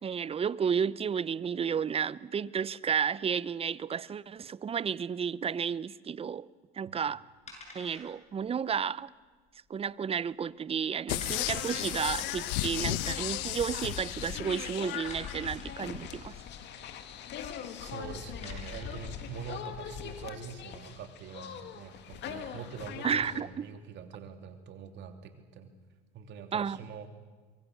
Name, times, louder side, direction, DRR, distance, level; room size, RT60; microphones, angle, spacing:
voice 1, 0.0-6.5 6.7-7.2 7.7-9.1 9.7-16.3 23.0-23.6 26.5-26.8, right 7 dB, 30° right, 20 dB, 0.7 m, -32 dB
sound 1, 7.5-8.4 8.7-8.8 9.4-9.8 10.2-10.3 10.8-10.9 11.2-12.2 13.3-13.4 14.0-14.1 15.0-15.8 17.6-17.8 18.2-19.1, left 2 dB, 30° left, 7.8 m, -47 dB
sound 2, 11.1-15.5 16.0-16.1, left 17 dB, 80° left, 0.9 m, -35 dB
sound 3, 11.2-23.4, left 8 dB, 55° left, 2.2 m, -41 dB
voice 2, 17.8-25.7 26.1-27.1, right 6 dB, 60° right, 6 dB, 3.1 m, -44 dB
24.5 x 23.0 x 6.8 m, 1.4 s
supercardioid pair, 95°, 21 cm